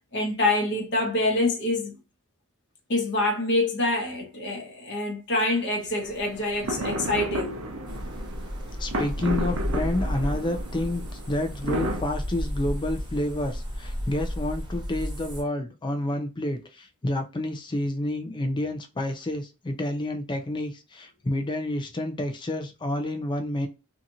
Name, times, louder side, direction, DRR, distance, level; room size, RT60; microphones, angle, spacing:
voice 1, 0.1-2.0 2.9-7.6, left 2 dB, 55° left, 1.0 m, -26 dB
sound 1, 6.0-12.0, right 1 dB, 70° right, 0.6 m, -33 dB
sound 2, 7.8-15.4, equal, 20° right, 1.0 m, -33 dB
voice 2, 8.8-23.7, left 1 dB, 20° left, 0.4 m, -29 dB
2.8 x 2.5 x 2.5 m
head